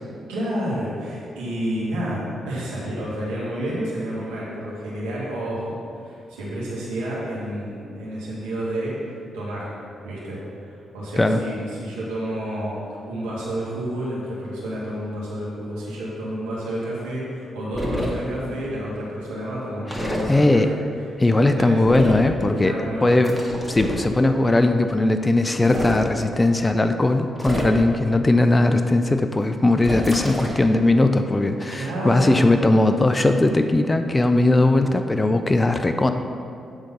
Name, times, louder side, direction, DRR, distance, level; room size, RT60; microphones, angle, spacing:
voice 1, 0.3-8.9 9.3-9.7 10.0-10.4 10.6-12.8 13.0-20.8 21.3-21.8 22.6-23.3 31.7-32.6, right 1 dB, 90° right, -7 dB, 1.7 m, -30 dB
sound 1, 17.7-18.1 19.9-20.2 21.9-22.3 23.2-24.0 25.5-26.0 27.4-28.0 29.8-30.6, equal, 5° left, 1.9 m, -28 dB
voice 2, 19.9-20.7 21.2-22.7 23.0-23.3 23.7-36.1, left 2 dB, 25° left, 7 dB, 0.5 m, -19 dB
8.8 x 3.9 x 5.4 m, 2.5 s
hypercardioid pair, 45°, 0 cm